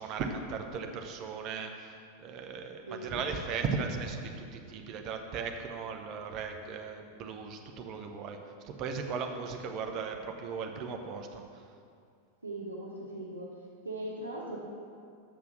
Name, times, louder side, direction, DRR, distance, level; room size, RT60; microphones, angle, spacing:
voice 1, 0.0-8.4 8.6-11.4, right 5 dB, 35° right, 4 dB, 0.9 m, -37 dB
voice 2, 2.9-3.3 12.4-13.6 13.8-14.6, right 1 dB, 80° right, -4 dB, 1.0 m, -39 dB
7.4 x 6.0 x 6.0 m, 2.3 s
figure-of-eight pair, 90°, 0 cm